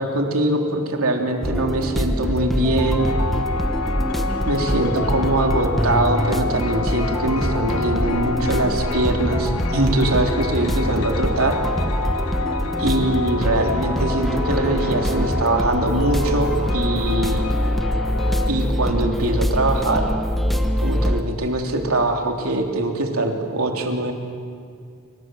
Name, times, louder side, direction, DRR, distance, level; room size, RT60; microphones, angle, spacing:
voice 1, 0.0-3.1 4.5-11.6 12.8-17.4 18.5-20.1 20.8-24.1, right 2 dB, 70° right, 3 dB, 3.4 m, -22 dB
sound 1, 1.4-21.2, equal, ahead, 1.5 m, -24 dB
sound 2, 3.0-18.5, left 4 dB, 80° left, 1.5 m, -29 dB
27.5 x 26.0 x 7.8 m, 2.3 s
head